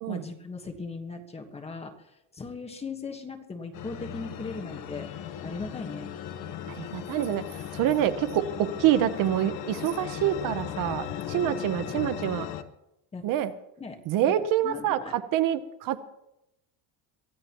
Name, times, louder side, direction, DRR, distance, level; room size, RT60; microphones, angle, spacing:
voice 1, 0.1-1.9 2.3-5.1 5.4-6.1 11.3-11.6 13.1-13.2 13.8-14.0 14.3-15.2, left 4 dB, 15° left, 4 dB, 1.3 m, -38 dB
sound 1, 3.7-12.6, left 9 dB, 50° left, 1.0 m, -37 dB
voice 2, 6.7-7.4 7.7-8.4 8.8-12.5 13.2-13.5 14.1-16.0, right 11 dB, 55° right, 11 dB, 0.9 m, -26 dB
23.5 x 15.0 x 3.0 m, 0.89 s
cardioid pair, 170°, 40 cm